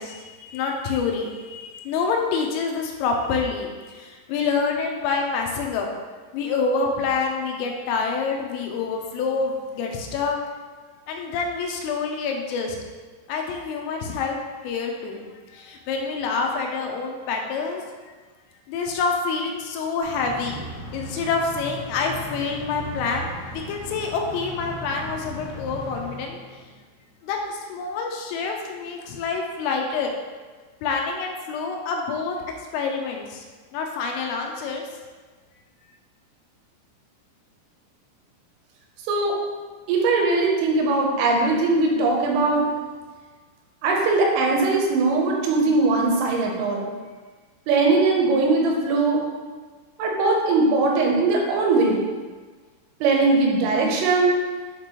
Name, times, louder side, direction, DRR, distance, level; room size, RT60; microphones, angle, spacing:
voice 1, 0.0-5.9 6.3-10.4 11.1-12.8 13.3-14.4 14.6-15.3 15.5-17.8 18.7-26.4 27.2-30.2 30.8-33.4 33.7-34.9, left 4 dB, 85° left, 2 dB, 3.1 m, -27 dB
sound 1, 20.0-26.8, right 1 dB, 65° left, 3.4 m, -37 dB
voice 2, 39.9-42.7 43.8-46.9 47.7-49.3 50.0-52.0 53.0-54.4, right 3 dB, 80° right, 0 dB, 3.4 m, -20 dB
7.4 x 5.2 x 3.0 m, 1.4 s
omnidirectional pair, 6.0 m